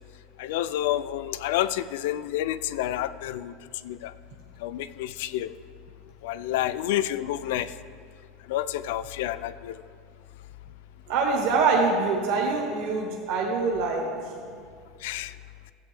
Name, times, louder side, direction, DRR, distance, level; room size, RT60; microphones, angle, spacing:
voice 1, 0.4-3.5 3.8-4.1 4.6-5.5 6.2-7.7 8.5-9.8 15.0-15.3, left 13 dB, 70° left, 14 dB, 0.3 m, -29 dB
voice 2, 11.1-14.1, right 4 dB, 55° right, -1 dB, 1.1 m, -24 dB
14.0 x 7.9 x 3.4 m, 2.2 s
cardioid pair, 180°, 0 cm